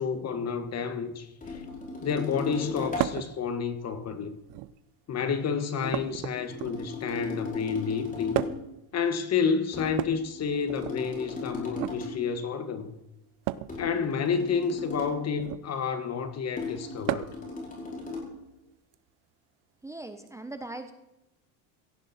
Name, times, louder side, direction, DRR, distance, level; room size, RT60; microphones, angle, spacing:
voice 1, 0.0-1.6 2.0-4.4 5.1-8.4 8.9-12.9 13.8-17.3, left 6 dB, 35° left, 1.6 m, -30 dB
sound 1, 1.4-3.2 5.8-8.7 9.7-12.3 13.7-15.3 16.6-18.4, left 3 dB, 20° left, 5.4 m, -37 dB
sound 2, 3.0-3.3 4.4-4.9 5.9-7.0 8.3-8.8 9.9-11.0 11.7-12.0 13.4-13.8 15.3-15.7 17.1-17.5 18.9-19.0 20.3-20.4, right 15 dB, 60° right, 0.8 m, -33 dB
voice 2, 19.8-20.9, right 2 dB, 5° right, 1.0 m, -39 dB
17.0 x 15.0 x 4.3 m
cardioid pair, 130°, 44 cm